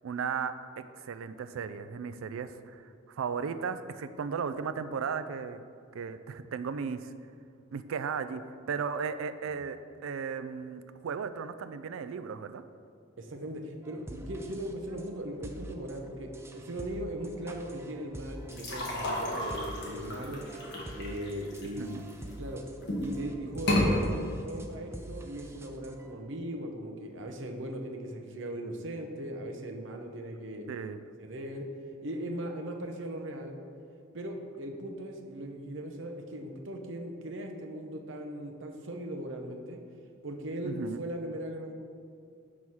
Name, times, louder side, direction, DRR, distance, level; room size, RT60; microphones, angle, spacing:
voice 1, 0.0-5.6 5.9-7.1 7.7-8.4 8.7-12.6 21.8-22.0 30.7-31.0 40.6-41.0, right 6 dB, 85° right, 12 dB, 0.4 m, -36 dB
voice 2, 13.2-20.4 21.0-22.6 23.0-30.7 31.2-31.7 32.0-33.6 34.1-39.8 40.2-41.7, right 1 dB, 65° right, 2 dB, 0.7 m, -39 dB
sound 1, 13.8-26.1, right 1 dB, 15° right, 0.4 m, -46 dB
sound 2, 18.5-22.3 22.8-23.2 23.5-23.9, left 1 dB, 55° left, 1.3 m, -32 dB
6.1 x 4.7 x 5.5 m, 2.4 s
head